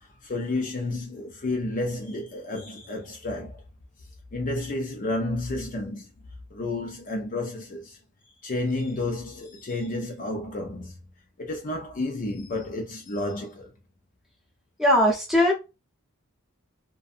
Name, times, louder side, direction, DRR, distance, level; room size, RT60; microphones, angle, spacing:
voice 1, 0.0-3.6 4.3-6.1 6.5-8.0 8.4-11.0 11.4-13.7, left 2 dB, 40° left, 0.5 m, -31 dB
voice 2, 14.8-15.5, left 1 dB, ahead, 0.8 m, -19 dB
2.6 x 2.2 x 2.5 m
head